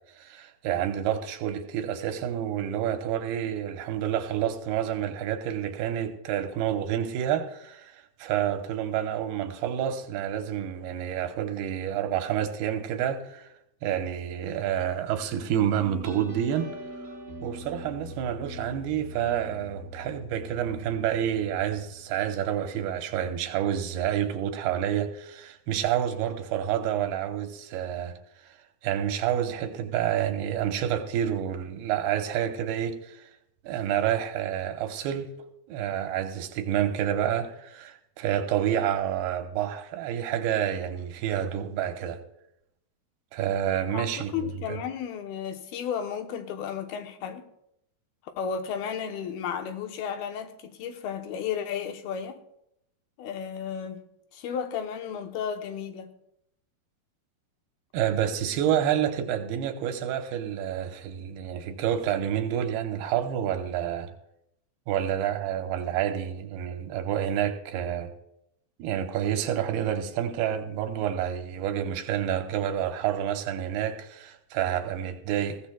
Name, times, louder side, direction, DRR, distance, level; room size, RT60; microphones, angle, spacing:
voice 1, 0.2-13.5 13.8-16.7 17.4-28.1 28.4-28.5 28.8-33.3 33.6-35.3 35.7-42.2 43.3-44.8 57.9-64.1 64.9-68.1 68.8-75.6, right 10 dB, 90° right, 2.9 m, -29 dB
sound 1, 15.8-23.0, left 1 dB, 20° right, 3.0 m, -43 dB
voice 2, 43.9-47.5 48.4-52.4 53.2-54.0 54.3-56.1, left 7 dB, 80° left, 2.8 m, -33 dB
20.0 x 15.0 x 2.3 m
omnidirectional pair, 4.4 m